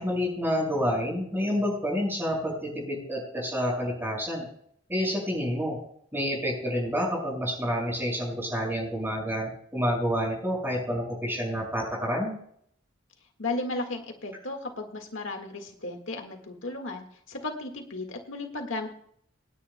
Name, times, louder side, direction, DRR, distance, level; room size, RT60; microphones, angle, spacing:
voice 1, 0.0-4.5 4.9-5.8 6.1-12.3, equal, 10° right, -1 dB, 5.5 m, -28 dB
voice 2, 13.4-18.9, left 2 dB, 70° left, 3 dB, 1.7 m, -35 dB
27.5 x 10.0 x 2.2 m, 0.66 s
head